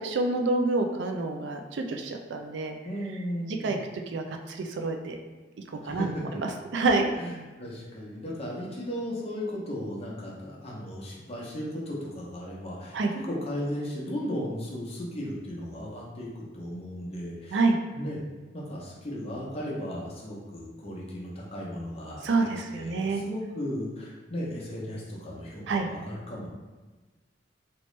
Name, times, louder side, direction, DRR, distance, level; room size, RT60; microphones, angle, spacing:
voice 1, 0.0-2.7 3.6-3.8 4.1-5.2 5.7-6.1 6.7-7.1 12.9-13.1 17.5-17.8 22.2-23.2 25.7-25.9, right 3 dB, 70° right, 4 dB, 0.4 m, -27 dB
voice 2, 2.8-3.8 5.8-6.4 7.1-17.7 17.9-18.2 18.5-26.5, equal, 35° left, -4 dB, 0.8 m, -36 dB
3.0 x 3.0 x 3.1 m, 1.3 s
head